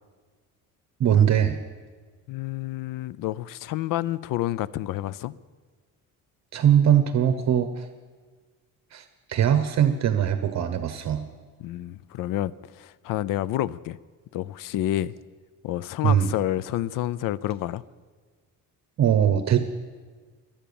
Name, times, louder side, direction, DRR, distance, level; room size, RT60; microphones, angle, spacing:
voice 1, 1.0-1.6 6.5-7.8 8.9-11.2 16.0-16.3 19.0-19.7, right 9 dB, 55° right, 9 dB, 1.0 m, -21 dB
voice 2, 2.3-5.3 11.6-14.0 14.3-15.1 15.6-17.8, left 14 dB, 80° left, 20 dB, 0.6 m, -29 dB
23.0 x 8.9 x 7.0 m, 1.5 s
cardioid pair, 110°, 33 cm